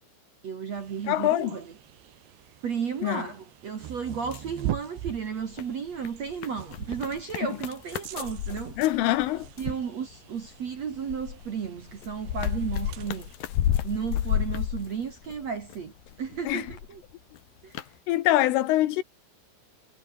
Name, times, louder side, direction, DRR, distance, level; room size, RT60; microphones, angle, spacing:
voice 1, 0.4-1.6 2.6-8.8 9.6-13.3 13.8-15.9 16.2-17.0 17.6-17.7, right 6 dB, 50° right, 2.2 m, -33 dB
sound 1, 0.7-13.4, right 13 dB, 70° right, 3.5 m, -42 dB
voice 2, 1.1-1.6 3.0-3.2 7.5-7.6 8.8-9.8 16.5-16.7 18.1-19.0, left 15 dB, 80° left, 3.8 m, -24 dB
sound 2, 4.1-5.1 5.4-9.8 10.4-15.8 16.1-17.0 17.3-17.4 17.7-17.9, left 11 dB, 60° left, 2.9 m, -31 dB
sound 3, 6.8-16.8, left 4 dB, 40° left, 6.2 m, -54 dB
omnidirectional pair, 5.7 m